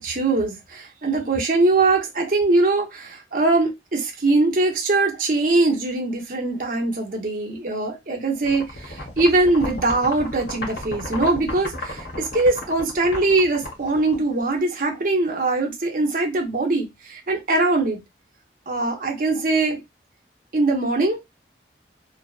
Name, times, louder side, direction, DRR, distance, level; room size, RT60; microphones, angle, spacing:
voice 1, 0.0-18.0 18.7-19.8 20.5-21.4, right 2 dB, 50° right, 0.7 m, -22 dB
sound 1, 8.4-14.6, left 1 dB, 60° left, 0.8 m, -34 dB
2.7 x 2.1 x 2.4 m
head